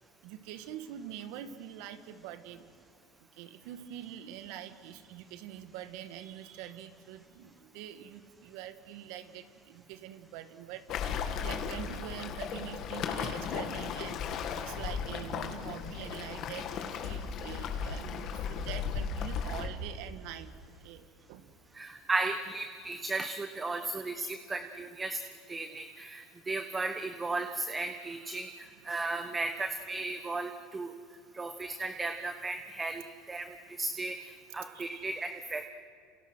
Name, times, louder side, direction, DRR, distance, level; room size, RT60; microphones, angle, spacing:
voice 1, 0.2-2.7 3.3-21.5 23.7-24.3 28.3-28.4 34.7-35.1, right 11 dB, 70° right, 10 dB, 1.7 m, -45 dB
Waves surf, 10.9-19.7, left 7 dB, 50° left, 2.4 m, -36 dB
voice 2, 21.8-25.2 25.5-28.5 28.8-30.9 31.4-33.0 33.3-35.7, right 3 dB, 15° right, 8 dB, 1.2 m, -35 dB
28.5 x 27.5 x 6.3 m, 2.2 s
supercardioid pair, 110°, 0 cm